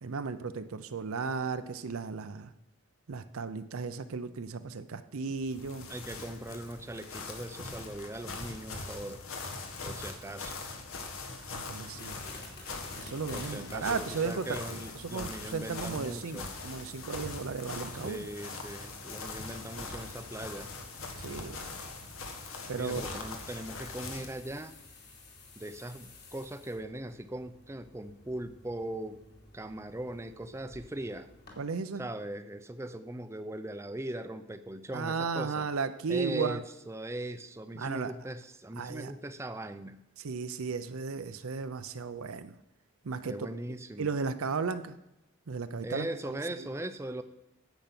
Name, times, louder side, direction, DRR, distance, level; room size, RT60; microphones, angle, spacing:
voice 1, 0.0-2.5 3.1-5.9 11.5-12.1 13.0-14.8 15.1-18.3 21.2-21.6 22.7-23.0 31.6-32.1 34.9-36.6 37.7-38.1 38.8-39.1 40.2-42.6 43.0-43.4 44.0-45.0 45.5-46.7, right 5 dB, 80° right, 10 dB, 0.6 m, -35 dB
sound 1, 5.3-24.4, left 3 dB, 75° left, 1.6 m, -42 dB
voice 2, 5.9-9.2 9.8-10.6 13.3-16.6 18.0-20.7 22.7-24.8 25.6-29.2 29.5-31.3 32.0-35.7 36.1-40.0 43.2-44.1 45.8-47.2, right 1 dB, 15° right, 10 dB, 0.5 m, -39 dB
sound 2, 11.9-31.6, left 3 dB, 50° left, 2.8 m, -52 dB
10.5 x 8.0 x 5.9 m, 0.86 s
head